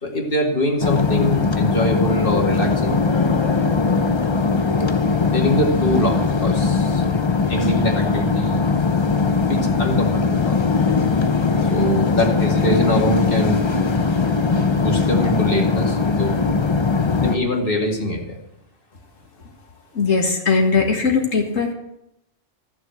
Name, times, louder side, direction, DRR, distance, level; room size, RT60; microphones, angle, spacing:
voice 1, 0.0-3.0 5.2-7.0 7.5-8.7 9.5-10.7 11.7-13.6 14.8-16.4 17.2-18.4, left 1 dB, 45° left, 0 dB, 2.5 m, -23 dB
sound 1, 0.8-17.4, left 4 dB, 25° left, 0.7 m, -20 dB
voice 2, 19.9-21.7, left 4 dB, 85° left, 1 dB, 2.2 m, -19 dB
14.5 x 7.1 x 7.9 m, 0.83 s
omnidirectional pair, 1.3 m